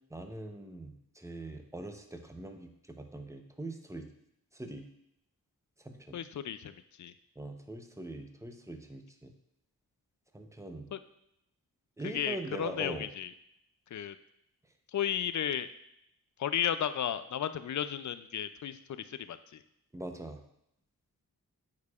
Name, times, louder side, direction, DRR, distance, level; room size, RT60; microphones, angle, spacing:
voice 1, 0.1-2.7 3.0-4.0 4.5-4.8 5.8-6.2 7.4-9.3 10.3-10.9 12.0-13.1 19.9-20.4, right 2 dB, 10° right, 5 dB, 0.8 m, -42 dB
voice 2, 6.1-7.1 10.9-11.0 12.0-13.3 13.9-14.2 14.9-15.7 16.4-19.6, left 9 dB, 50° left, 12 dB, 0.4 m, -34 dB
8.3 x 4.7 x 2.4 m, 0.77 s
cardioid pair, 55°, 38 cm